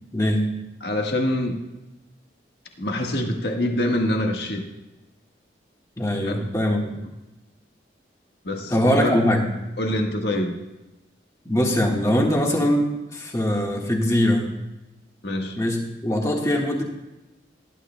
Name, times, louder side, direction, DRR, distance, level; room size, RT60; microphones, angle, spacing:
voice 1, 0.1-0.5 6.0-7.0 8.7-9.4 11.4-14.5 15.6-16.8, equal, 15° left, 0 dB, 1.5 m, -22 dB
voice 2, 0.8-1.6 2.8-4.6 6.2-6.4 8.4-9.1 9.8-10.6 15.2-15.6, left 1 dB, 70° left, 2 dB, 1.5 m, -25 dB
19.0 x 11.5 x 2.2 m, 1.0 s
head